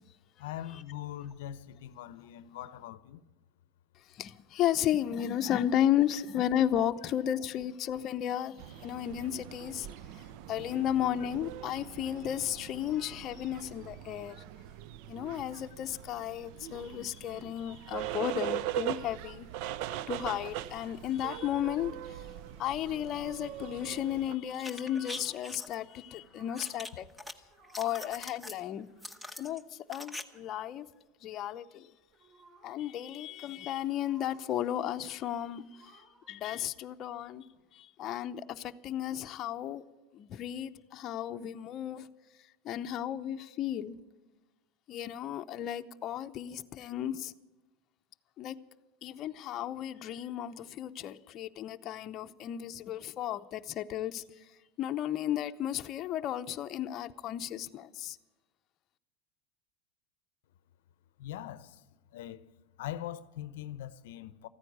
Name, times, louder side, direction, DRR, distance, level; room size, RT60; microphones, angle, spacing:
voice 1, 0.4-3.2 61.2-61.8 62.1-62.4 62.8-64.5, left 12 dB, 80° left, 0.6 m, -42 dB
voice 2, 4.0-14.4 15.1-19.5 19.9-22.3 22.6-27.1 27.8-28.9 29.4-30.9 31.2-31.9 32.6-37.5 37.7-39.8 40.1-42.1 42.6-44.0 44.9-47.3 48.4-48.6 49.0-54.5 54.8-58.2, left 11 dB, 40° left, 0.6 m, -34 dB
sound 1, 8.6-24.4, right 13 dB, 60° right, 0.5 m, -41 dB
sound 2, 22.8-23.4 24.4-25.4 26.0-27.2 27.4-28.2 28.7-29.6 30.2-30.5 32.0-32.8 33.8-34.6 35.3-36.4 37.2-37.6, right 2 dB, 35° right, 3.5 m, -59 dB
sound 3, 24.5-25.8 26.6-27.3 27.6-28.6 29.0-30.2 30.5-30.6, left 1 dB, ahead, 1.1 m, -43 dB
14.5 x 9.8 x 9.3 m
supercardioid pair, 115°, 0 cm